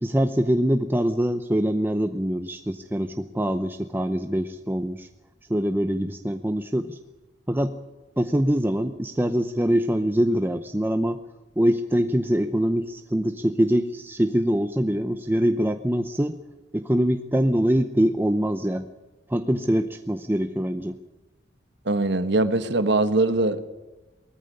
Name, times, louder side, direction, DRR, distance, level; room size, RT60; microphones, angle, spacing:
voice 1, 0.0-5.1 5.5-7.0 7.5-7.7 8.2-11.2 11.6-16.3 16.7-18.9 19.3-21.0, equal, 10° right, 0.7 m, -24 dB
voice 2, 21.8-23.7, right 2 dB, 65° right, 1.4 m, -22 dB
19.5 x 14.0 x 9.8 m
head